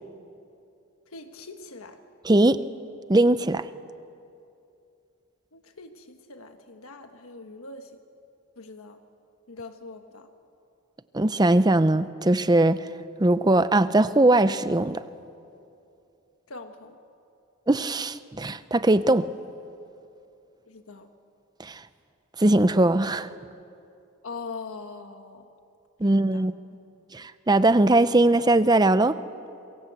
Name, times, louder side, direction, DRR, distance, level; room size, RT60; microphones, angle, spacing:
voice 1, 1.1-2.0 5.5-8.0 8.6-9.0 9.5-10.3 16.5-17.0 20.7-21.1 24.2-25.5 26.0-26.5, left 4 dB, 75° left, 6 dB, 1.3 m, -42 dB
voice 2, 2.2-2.6 3.1-3.7 11.1-12.9 13.2-15.0 17.7-19.3 21.6-21.8 22.4-23.3 26.0-26.5 27.1-29.2, right 2 dB, 20° right, 13 dB, 0.6 m, -20 dB
26.5 x 23.5 x 8.1 m, 2.6 s
head